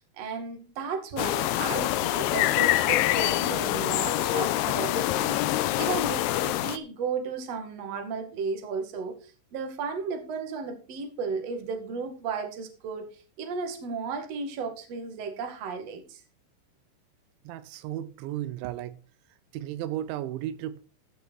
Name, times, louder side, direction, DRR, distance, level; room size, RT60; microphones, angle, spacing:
voice 1, 0.0-16.2, right 5 dB, 45° right, 2.4 m, -34 dB
sound 1, 1.2-6.8, left 15 dB, 90° left, 2.3 m, -25 dB
voice 2, 17.5-19.0 19.5-20.8, right 12 dB, 85° right, 3.0 m, -34 dB
15.0 x 6.3 x 4.5 m
omnidirectional pair, 5.3 m